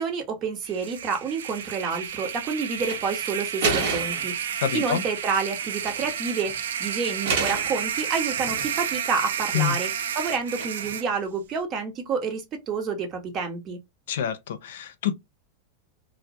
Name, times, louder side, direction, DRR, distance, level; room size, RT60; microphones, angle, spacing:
voice 1, 0.0-4.4 4.7-13.8, right 5 dB, 35° right, 0.8 m, -29 dB
sound 1, 0.6-11.0, right 8 dB, 90° right, 0.4 m, -31 dB
sound 2, 2.8-3.0 3.6-4.3 5.6-6.1 6.4-6.6 7.3-7.8 8.3-8.9 10.6-11.0, right 4 dB, 70° right, 0.8 m, -29 dB
voice 2, 4.6-5.0 9.5-9.8 14.1-15.1, left 9 dB, 75° left, 0.5 m, -27 dB
2.2 x 2.0 x 2.7 m
supercardioid pair, 130°, 0 cm